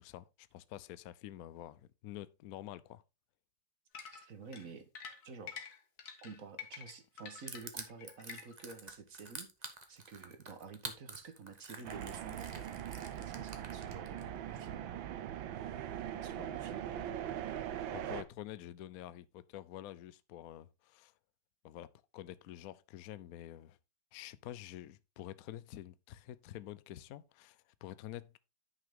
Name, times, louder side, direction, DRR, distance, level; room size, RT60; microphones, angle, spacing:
voice 1, 0.0-3.0 17.9-21.1 21.6-23.8 24.1-28.4, left 13 dB, 70° left, 0.8 m, -48 dB
sound 1, 3.9-8.7, left 6 dB, 55° left, 1.8 m, -48 dB
voice 2, 4.1-4.9 5.2-5.6 6.2-15.1 16.2-16.9, right 5 dB, 45° right, 1.5 m, -50 dB
Crushing, 7.5-14.2, right 3 dB, 25° right, 1.1 m, -47 dB
sound 2, 11.8-18.2, right 10 dB, 80° right, 1.6 m, -41 dB
10.0 x 5.9 x 3.7 m
omnidirectional pair, 2.1 m